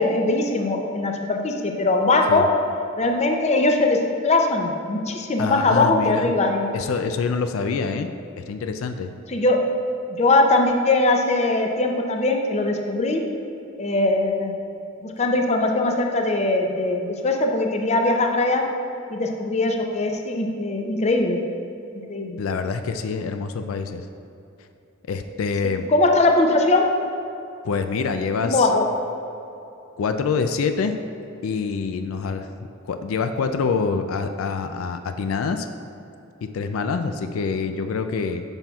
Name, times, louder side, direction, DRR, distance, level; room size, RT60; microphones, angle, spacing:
voice 1, 0.0-2.4 3.0-4.0 4.2-6.7 9.3-9.6 10.1-13.2 13.8-14.5 15.0-18.6 19.1-21.4 22.1-22.4 25.9-26.9 28.4-28.8, left 2 dB, 35° left, 3 dB, 0.5 m, -21 dB
voice 2, 5.4-6.3 6.7-8.1 8.4-9.1 22.4-24.1 25.1-25.9 27.6-28.7 30.0-30.9 31.4-32.5 32.9-35.7 36.4-38.4, left 5 dB, 90° left, 8 dB, 0.4 m, -26 dB
8.9 x 5.8 x 2.3 m, 2.8 s
head